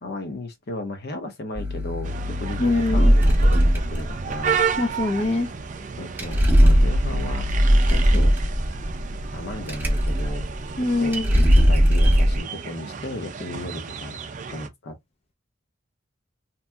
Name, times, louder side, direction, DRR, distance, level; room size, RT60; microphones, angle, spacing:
voice 1, 0.0-4.7 6.0-7.5 7.9-8.3 9.3-10.5 11.0-11.2 11.5-14.2 14.5-15.0, left 2 dB, 55° left, 0.8 m, -35 dB
sound 1, 1.6-12.4, equal, 10° right, 0.7 m, -20 dB
sound 2, 2.0-14.7, right 6 dB, 40° right, 0.4 m, -32 dB
voice 2, 2.6-3.1 4.8-5.5 10.8-11.4, left 2 dB, 35° left, 0.4 m, -23 dB
2.9 x 2.6 x 2.2 m
head